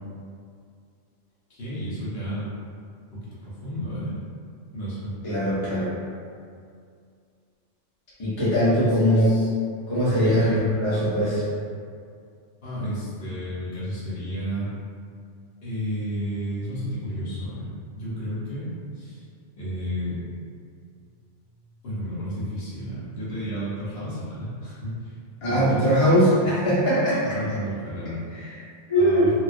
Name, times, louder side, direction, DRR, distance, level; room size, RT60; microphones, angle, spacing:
voice 1, 1.5-2.5 3.1-4.1 4.7-5.1 8.8-9.5 10.1-10.8 12.6-14.7 15.6-18.7 18.9-19.2 19.6-20.2 21.8-25.2 25.5-25.8 27.1-28.2 28.9-29.3, equal, 60° left, -10 dB, 0.9 m, -32 dB
voice 2, 5.2-5.9 8.2-9.3 9.9-11.4 25.4-27.2 28.9-29.3, equal, 35° left, -10 dB, 0.6 m, -21 dB
2.3 x 2.2 x 2.4 m, 2.3 s
omnidirectional pair, 1.2 m